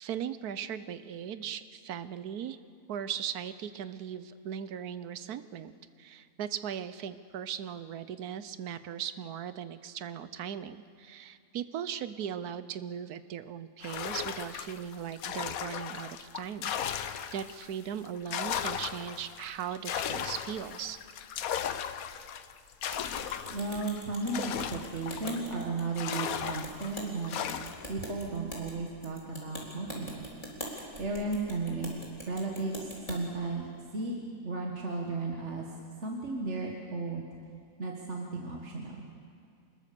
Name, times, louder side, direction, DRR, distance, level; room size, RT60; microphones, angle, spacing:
voice 1, 0.0-2.6 2.9-5.7 6.0-21.0, right 9 dB, 70° right, 13 dB, 1.3 m, -38 dB
sound 1, 13.8-17.7 18.1-25.6 26.0-27.9, left 9 dB, 65° left, 1.2 m, -36 dB
sound 2, 22.9-33.2, equal, 20° left, 3.8 m, -43 dB
voice 2, 23.5-27.3 27.9-30.3 31.0-31.9 32.2-37.3 37.8-39.1, right 3 dB, 45° right, 0 dB, 1.9 m, -35 dB
25.5 x 20.5 x 6.8 m, 2.4 s
omnidirectional pair, 1.7 m